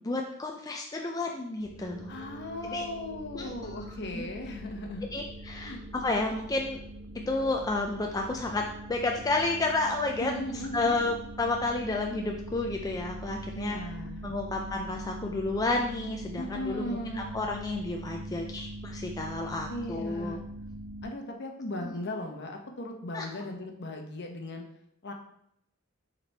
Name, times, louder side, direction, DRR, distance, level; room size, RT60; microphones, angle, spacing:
voice 1, 0.0-2.1 2.6-2.9 3.3-3.5 3.9-4.3 5.1-6.8 7.3-8.6 8.9-10.3 10.7-13.8 14.2-20.4 21.8-21.9 23.1-23.3, left 2 dB, 15° left, 1 dB, 0.4 m, -31 dB
sound 1, 1.6-21.0, right 1 dB, 20° right, 1.9 m, -42 dB
voice 2, 1.8-5.1 5.6-5.8 10.2-11.0 13.5-14.3 16.3-17.3 19.7-20.4 21.0-24.6 25.0-25.1, left 1 dB, 55° left, 3 dB, 0.9 m, -37 dB
7.0 x 4.1 x 3.3 m, 0.73 s
head